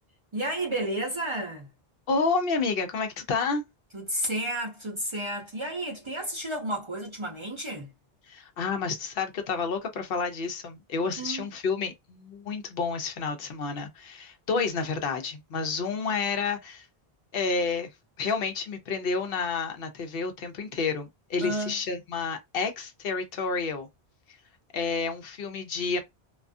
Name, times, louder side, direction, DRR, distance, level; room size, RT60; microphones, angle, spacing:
voice 1, 0.3-1.7 3.9-7.9 11.2-11.5 14.5-14.6 21.4-21.7, right 1 dB, 35° right, 0.6 m, -32 dB
voice 2, 2.1-3.6 8.3-16.9 17.3-17.9 18.2-23.9 24.7-26.0, left 4 dB, 70° left, 0.8 m, -30 dB
2.3 x 2.3 x 2.4 m
omnidirectional pair, 1.0 m